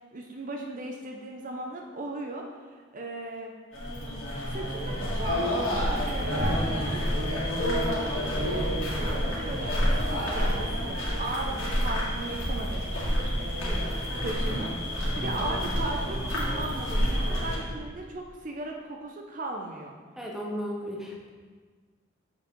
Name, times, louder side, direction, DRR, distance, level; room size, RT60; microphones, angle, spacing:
voice 1, 0.1-3.5 4.3-7.5 8.3-19.9, right 2 dB, 40° right, 1 dB, 0.5 m, -37 dB
sound 1, 3.7-17.5, equal, 80° left, 2.0 m, -28 dB
voice 2, 20.2-21.3, equal, ahead, -2 dB, 0.8 m, -36 dB
7.4 x 4.8 x 3.7 m, 1.5 s
head